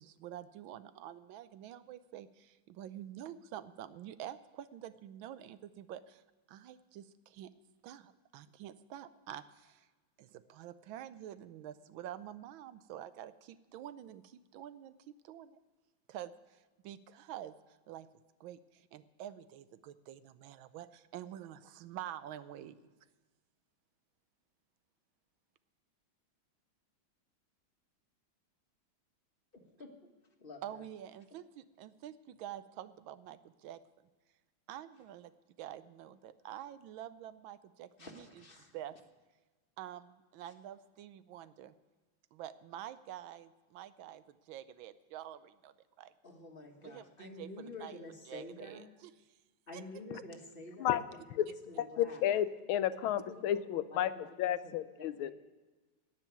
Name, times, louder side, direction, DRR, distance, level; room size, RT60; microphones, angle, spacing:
voice 1, 0.0-6.2 6.5-7.5 7.8-9.9 10.2-15.6 16.1-18.1 18.4-22.8 30.6-33.8 34.7-35.3 35.6-38.3 38.6-39.0 39.8-41.7 42.3-46.1 46.8-48.0 48.3-49.1 49.7-49.8, right 11 dB, 80° right, 14 dB, 1.4 m, -48 dB
voice 2, 29.5-29.9 30.4-30.8 38.0-38.7 46.2-48.9 49.7-52.2 53.0-53.6 53.9-54.7 55.0-55.3, left 2 dB, 30° left, 3 dB, 1.3 m, -50 dB
voice 3, 52.0-54.1 54.4-55.3, left 11 dB, 90° left, 13 dB, 1.5 m, -31 dB
17.5 x 5.9 x 9.3 m, 1.3 s
omnidirectional pair, 2.2 m